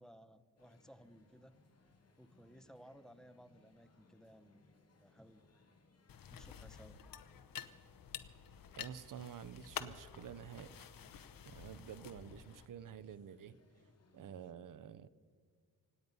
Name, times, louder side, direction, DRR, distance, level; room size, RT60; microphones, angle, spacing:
voice 1, 0.0-1.6 2.2-4.6 5.0-5.5 6.3-7.0, equal, ahead, 12 dB, 0.7 m, -59 dB
sound 1, 0.6-14.5, left 3 dB, 45° left, 2.2 m, -69 dB
sound 2, 6.1-12.6, left 8 dB, 65° left, 0.9 m, -50 dB
voice 2, 8.7-10.9 11.5-13.6 14.1-15.1, right 8 dB, 60° right, 17 dB, 0.7 m, -50 dB
25.5 x 9.5 x 5.4 m, 2.1 s
wide cardioid pair, 115°, 36 cm